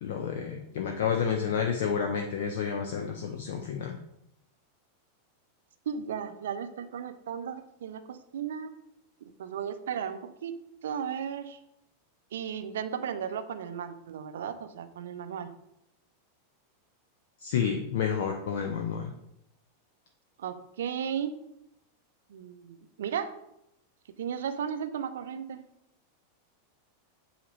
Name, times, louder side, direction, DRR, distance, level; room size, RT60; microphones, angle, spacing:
voice 1, 0.0-4.0 17.4-19.1, left 7 dB, 55° left, 3 dB, 0.7 m, -30 dB
voice 2, 5.9-8.7 9.4-11.6 12.3-15.5 20.4-21.4 22.3-23.3 24.2-25.6, right 8 dB, 60° right, 9 dB, 0.6 m, -35 dB
8.3 x 2.9 x 5.2 m, 0.81 s
figure-of-eight pair, 90°, 0 cm